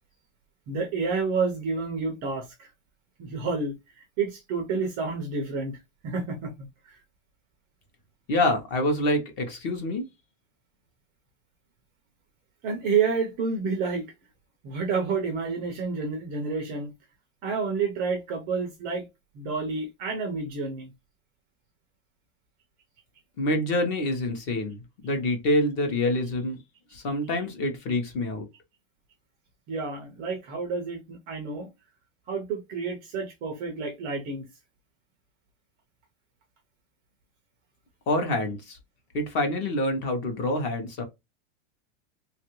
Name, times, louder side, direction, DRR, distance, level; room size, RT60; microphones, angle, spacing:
voice 1, 0.7-2.7 3.2-7.0 12.6-14.1 14.6-16.9 17.4-19.1 19.3-20.9 29.7-31.7 32.3-34.5, right 4 dB, 25° right, 0.4 m, -29 dB
voice 2, 8.3-10.1 23.4-26.6 26.9-28.5 38.1-38.8 39.1-41.0, left 1 dB, 30° left, 0.7 m, -26 dB
3.0 x 2.4 x 2.9 m
supercardioid pair, 160°, 38 cm